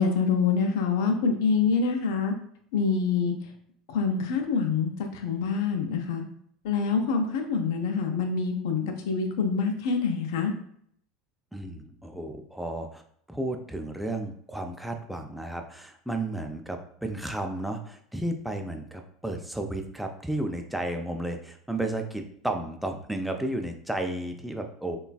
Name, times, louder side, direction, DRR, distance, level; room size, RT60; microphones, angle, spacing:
voice 1, 0.0-2.3 2.7-3.4 3.9-6.2 6.6-10.5, left 5 dB, 70° left, 5 dB, 0.4 m, -26 dB
voice 2, 11.5-13.0 13.3-25.0, right 1 dB, 5° right, 4 dB, 0.4 m, -33 dB
3.1 x 2.2 x 2.3 m, 0.66 s
hypercardioid pair, 80°, 2 cm